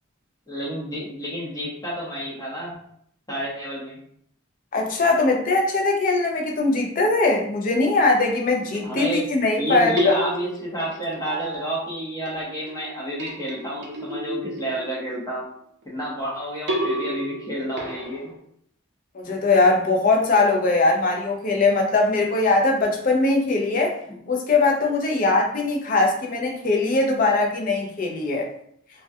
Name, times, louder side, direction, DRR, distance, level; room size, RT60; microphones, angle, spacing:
voice 1, 0.5-2.8 3.3-4.0 8.8-9.3 9.6-15.5 15.9-18.3, equal, 15° left, -5 dB, 0.7 m, -30 dB
voice 2, 4.7-10.2 19.1-24.0 24.3-28.5, left 3 dB, 40° left, 2 dB, 0.4 m, -21 dB
sound 1, 8.6-9.5 10.0-12.0 12.2-15.2 16.7-18.3, right 1 dB, 55° right, 0.5 m, -32 dB
2.2 x 2.2 x 2.6 m, 0.68 s
head